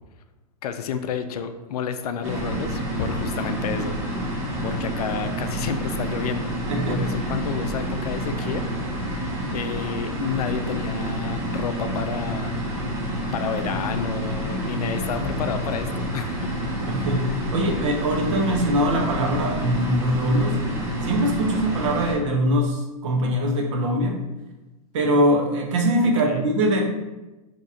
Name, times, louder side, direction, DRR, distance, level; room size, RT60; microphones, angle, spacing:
voice 1, 0.6-3.9 4.3-6.5 6.9-8.6 9.0-9.2 9.5-12.6 13.3-16.5 26.2-26.5, left 7 dB, 80° left, 9 dB, 0.4 m, -30 dB
sound 1, 2.2-22.1, equal, 15° right, 0.4 m, -28 dB
voice 2, 6.7-7.3 16.9-17.2 17.5-20.7 21.0-24.3 24.9-26.8, equal, 50° right, 1 dB, 0.8 m, -22 dB
2.9 x 2.4 x 4.1 m, 1.1 s
supercardioid pair, 165°, 19 cm